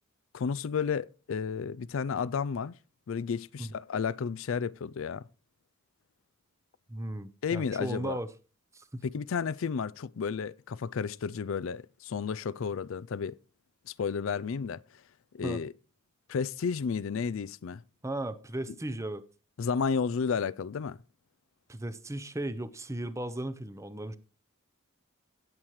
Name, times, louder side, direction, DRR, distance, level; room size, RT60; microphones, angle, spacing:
voice 1, 0.3-2.7 3.1-5.2 7.4-8.2 9.1-13.4 13.9-14.8 15.3-15.7 16.3-17.8 19.6-21.0, left 6 dB, 65° left, 0.4 m, -32 dB
voice 2, 6.9-8.3 8.7-9.0 15.4-15.6 18.0-19.2 21.7-24.2, right 1 dB, 15° right, 0.7 m, -36 dB
17.5 x 7.3 x 3.1 m
head